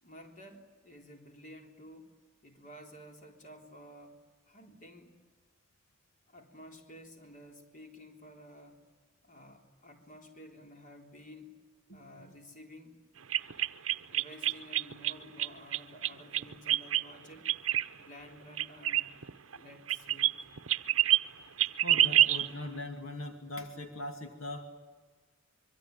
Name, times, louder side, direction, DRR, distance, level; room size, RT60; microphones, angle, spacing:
voice 1, 0.0-2.2 2.4-4.2 4.5-5.2 6.3-8.8 9.2-11.6 11.9-13.0 14.1-17.5 17.9-19.2 19.5-20.5, equal, 40° left, 3 dB, 3.6 m, -52 dB
voice 2, 11.9-12.3 21.8-24.7, left 1 dB, 70° left, 4 dB, 2.5 m, -41 dB
sound 1, 13.3-15.1 15.4-17.0 17.5-17.9 18.6-19.6 19.9-20.3 20.6-21.2 21.6-22.5, right 13 dB, 70° right, 0.8 m, -26 dB
25.0 x 23.5 x 9.3 m, 1.4 s
head